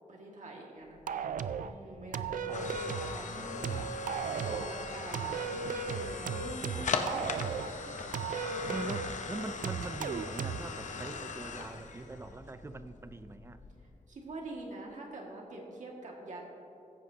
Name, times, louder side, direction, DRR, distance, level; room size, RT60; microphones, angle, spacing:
voice 1, 0.1-1.0 1.6-4.0 4.3-7.3 7.8-8.9 14.1-16.5, right 2 dB, 65° right, -1 dB, 2.0 m, -45 dB
sound 1, 1.0-14.0, left 4 dB, 65° left, 0.8 m, -40 dB
sound 2, 1.1-1.7 2.1-3.2 3.6-4.7 5.1-7.7 8.1-9.2 9.6-10.6, right 6 dB, 80° right, 0.4 m, -36 dB
voice 2, 2.5-4.0 8.7-13.6, right 2 dB, 20° right, 11 dB, 0.4 m, -43 dB
16.0 x 14.5 x 2.8 m, 2.9 s
wide cardioid pair, 180°, 14 cm